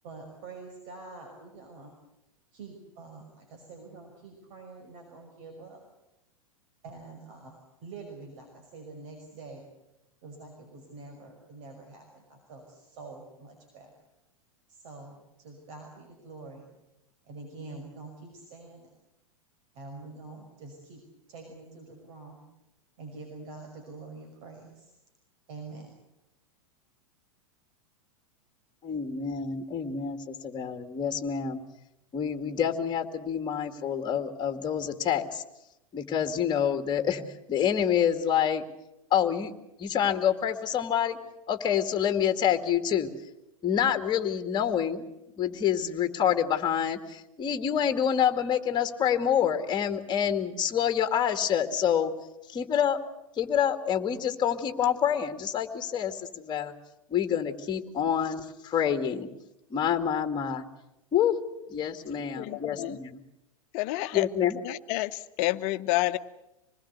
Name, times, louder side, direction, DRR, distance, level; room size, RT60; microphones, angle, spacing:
voice 1, 0.0-1.9 2.5-5.8 6.8-9.6 10.2-13.9 14.7-16.7 17.3-18.9 19.7-21.0 21.3-22.5 23.0-24.9 25.5-25.9, right 3 dB, 55° right, 3 dB, 5.8 m, -46 dB
voice 2, 28.8-31.6 32.1-35.4 35.9-37.2 37.5-38.7 39.1-39.5 39.8-41.2 41.5-43.1 43.6-45.0 45.4-52.1 52.5-53.0 53.4-56.7 57.1-59.3 59.7-60.7 61.1-61.4 61.7-63.2 64.1-64.6, left 9 dB, 25° left, 8 dB, 2.2 m, -27 dB
voice 3, 62.4-63.0 63.7-64.3 64.6-66.2, left 18 dB, 45° left, 11 dB, 1.2 m, -29 dB
26.0 x 20.5 x 8.2 m, 0.91 s
hypercardioid pair, 100°, 18 cm